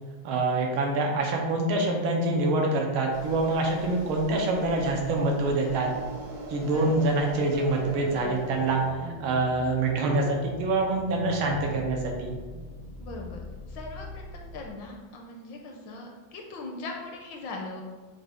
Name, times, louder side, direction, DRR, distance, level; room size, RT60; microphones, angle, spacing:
voice 1, 0.2-5.9 6.5-8.8 9.2-12.3, right 2 dB, 85° right, 1 dB, 1.6 m, -25 dB
sound 1, 3.1-8.9, right 1 dB, 60° right, 1.1 m, -40 dB
voice 2, 6.6-7.1 13.0-13.4 13.7-17.8, left 3 dB, 75° left, 1 dB, 1.2 m, -40 dB
sound 2, 7.7-14.7, left 1 dB, 25° right, 0.4 m, -42 dB
6.3 x 2.3 x 3.4 m, 1.4 s
omnidirectional pair, 2.3 m